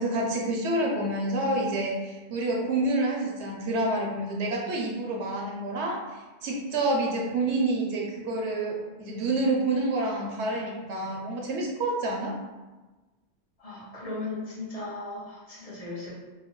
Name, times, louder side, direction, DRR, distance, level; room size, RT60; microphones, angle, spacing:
voice 1, 0.0-12.3, right 2 dB, 75° right, -1 dB, 0.9 m, -28 dB
voice 2, 13.6-16.1, left 2 dB, 35° left, -6 dB, 0.8 m, -37 dB
2.7 x 2.2 x 2.9 m, 1.2 s
omnidirectional pair, 1.2 m